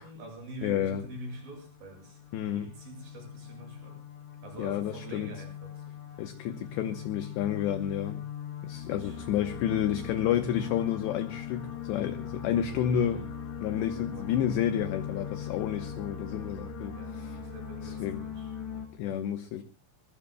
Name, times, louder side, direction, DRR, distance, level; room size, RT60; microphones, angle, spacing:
voice 1, 0.0-2.2 2.5-4.0 4.4-5.9 8.9-9.2 12.8-13.3 13.7-14.3 15.7-16.0 16.9-18.5, right 2 dB, 45° right, 2 dB, 8.5 m, -45 dB
voice 2, 0.6-1.0 2.3-2.7 4.6-5.3 6.2-8.2 8.6-13.3 13.6-17.4 17.8-18.2 18.9-19.6, left 10 dB, 75° left, 8 dB, 2.7 m, -30 dB
sound 1, 0.8-18.9, left 8 dB, 50° left, 3.9 m, -40 dB
23.5 x 21.5 x 2.3 m, 0.34 s
omnidirectional pair, 5.7 m